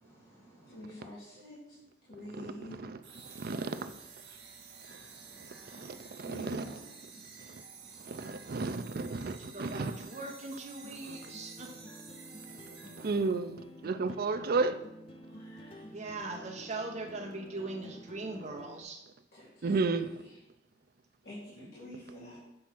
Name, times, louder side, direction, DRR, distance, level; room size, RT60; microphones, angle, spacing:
voice 1, 0.0-0.8 4.9-6.0 7.7-8.1, right 1 dB, 20° left, 1.8 m, -60 dB
voice 2, 0.7-1.8 2.1-2.8 6.2-6.8 7.1-7.2 15.2-15.9 19.3-19.5 21.2-22.5, left 1 dB, 70° left, 2.6 m, -47 dB
voice 3, 2.3-3.0 3.4-3.9 5.7-6.8 7.5-7.6 8.0-10.2 11.0-11.3 13.0-14.8 19.6-20.2 21.9-22.2, right 3 dB, 60° right, 0.5 m, -33 dB
sound 1, 3.0-13.6, right 5 dB, 80° right, 1.3 m, -51 dB
voice 4, 9.2-11.7 15.9-19.0, right 2 dB, 40° right, 1.1 m, -41 dB
sound 2, 10.8-18.8, left 1 dB, 35° left, 0.6 m, -51 dB
7.7 x 3.6 x 5.9 m
head